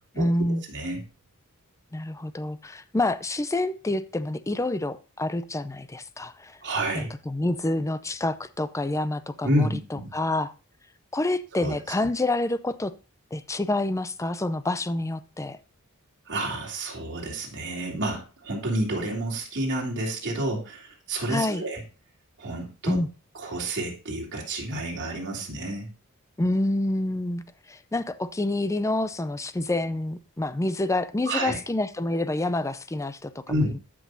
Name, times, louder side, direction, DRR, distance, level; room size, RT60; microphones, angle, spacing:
voice 1, 0.1-0.6 1.9-6.6 7.0-10.5 11.1-12.9 13.3-15.6 21.3-21.6 22.9-23.1 26.4-33.4 33.7-33.8, left 2 dB, 15° left, 0.5 m, -27 dB
voice 2, 0.7-1.0 6.6-7.1 9.4-10.1 11.5-11.8 16.3-21.8 22.4-23.0 23.4-25.9 31.2-31.6 33.5-33.7, right 1 dB, 55° right, 3.4 m, -29 dB
14.0 x 6.2 x 2.7 m
head